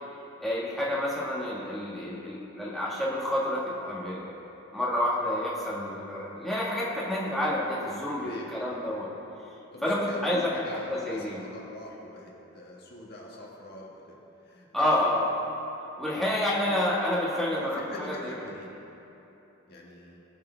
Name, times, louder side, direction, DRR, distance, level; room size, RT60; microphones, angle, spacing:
voice 1, 0.4-4.3 4.7-9.1 9.8-11.4 14.7-15.2 16.0-18.3, left 1 dB, ahead, -8 dB, 1.5 m, -29 dB
voice 2, 8.2-8.5 9.1-9.2 9.7-14.2 14.4-14.9 16.1-16.4 17.5-18.7 19.7-20.2, left 1 dB, 45° left, -3 dB, 1.5 m, -44 dB
20.0 x 6.7 x 3.4 m, 3.0 s
head